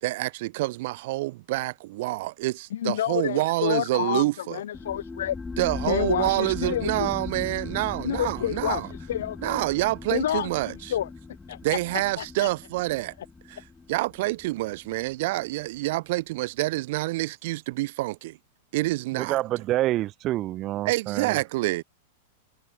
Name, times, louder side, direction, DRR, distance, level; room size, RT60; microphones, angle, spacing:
voice 1, 0.0-4.6 5.6-8.9 9.4-10.9 11.6-13.1 13.5-18.4 18.7-19.4 20.8-21.8, right 19 dB, 60° right, 1.4 m, -27 dB
voice 2, 2.7-5.4 5.9-7.1 8.0-8.8 9.1-9.6 10.1-11.1 11.5-11.8 12.2-12.5, left 11 dB, 75° left, 0.8 m, -29 dB
sound 1, 4.7-15.9, left 4 dB, 10° left, 1.5 m, -39 dB
voice 3, 19.1-21.4, right 15 dB, 40° right, 0.8 m, -27 dB
hypercardioid pair, 120°, 0 cm